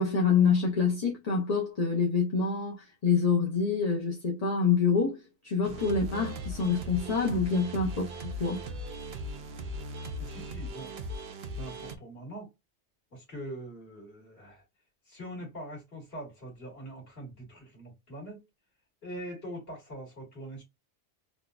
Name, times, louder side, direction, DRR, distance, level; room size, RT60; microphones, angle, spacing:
voice 1, 0.0-8.6, left 5 dB, 40° left, 0.8 m, -26 dB
sound 1, 5.6-12.0, equal, 65° right, 0.8 m, -39 dB
voice 2, 10.2-10.9 11.6-12.5 13.1-14.6 15.1-18.4 19.0-20.6, right 1 dB, 55° left, 2.0 m, -43 dB
3.8 x 2.4 x 2.4 m
omnidirectional pair, 1.2 m